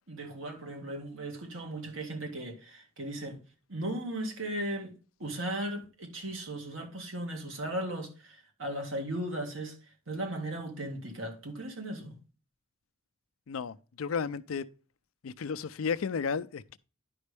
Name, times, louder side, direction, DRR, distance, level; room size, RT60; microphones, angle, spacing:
voice 1, 0.1-3.4 3.7-4.9 5.2-9.8 10.1-12.2, right 1 dB, 70° right, 1.9 m, -37 dB
voice 2, 13.5-14.7 15.2-16.8, left 6 dB, 90° left, 0.5 m, -33 dB
10.5 x 5.3 x 3.4 m
head